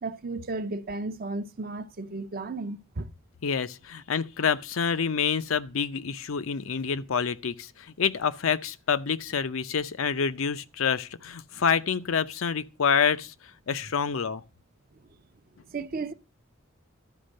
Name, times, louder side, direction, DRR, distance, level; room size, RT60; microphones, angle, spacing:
voice 1, 0.0-3.1 15.7-16.1, right 3 dB, 45° right, 0.6 m, -34 dB
voice 2, 3.4-13.3 13.7-14.4, left 6 dB, 85° left, 0.6 m, -27 dB
12.0 x 5.2 x 6.4 m
head